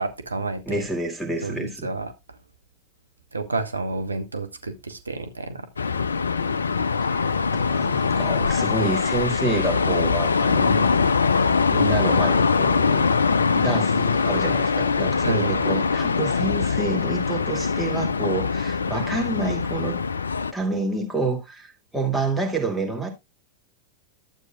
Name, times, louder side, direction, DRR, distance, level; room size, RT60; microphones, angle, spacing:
voice 1, 0.0-0.9 1.4-2.1 3.3-5.7 10.6-11.0 15.2-15.7, right 3 dB, 80° right, 0.8 m, -30 dB
voice 2, 0.7-1.9 7.0-7.3 7.5-10.9 11.7-13.2 13.5-20.0 20.5-23.1, right 2 dB, 5° right, 2.4 m, -28 dB
sound 1, 5.8-20.5, left 5 dB, 75° left, 0.4 m, -22 dB
12.0 x 8.2 x 2.3 m
figure-of-eight pair, 90°, 0 cm